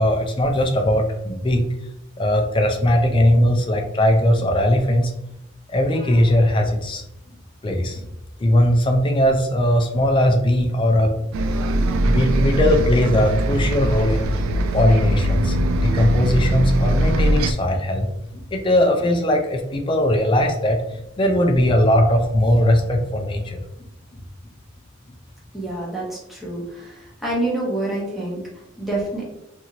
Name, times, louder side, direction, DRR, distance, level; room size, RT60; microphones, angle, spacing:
voice 1, 0.0-1.6 2.2-5.1 5.7-7.0 7.6-8.0 8.4-11.1 12.0-14.3 14.7-15.6 15.8-18.1 18.3-23.6, left 1 dB, 25° left, 2 dB, 0.3 m, -19 dB
Bus, 11.3-17.5, right 1 dB, 80° right, 0.3 m, -21 dB
voice 2, 25.5-29.2, right 2 dB, ahead, -6 dB, 0.8 m, -27 dB
2.8 x 2.6 x 2.8 m, 0.84 s
head